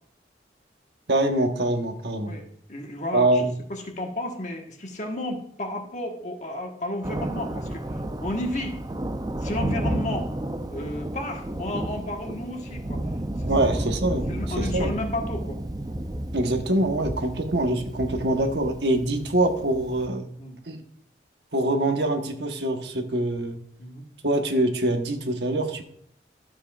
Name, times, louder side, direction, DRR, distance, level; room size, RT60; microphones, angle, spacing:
voice 1, 1.1-2.3 3.1-3.5 13.4-14.3 14.6-14.9 16.3-20.3 20.7-20.8 21.5-23.6 24.2-25.8, right 1 dB, 75° right, 5 dB, 1.2 m, -24 dB
voice 2, 2.7-7.8 8.2-8.8 9.4-10.3 10.7-13.0 13.4-13.5 14.3-15.6 20.4-20.6 23.8-24.0, left 1 dB, 40° left, 3 dB, 1.4 m, -32 dB
Thunder, 7.0-20.1, right 1 dB, 20° right, 0.5 m, -32 dB
12.5 x 7.6 x 2.4 m, 0.65 s
head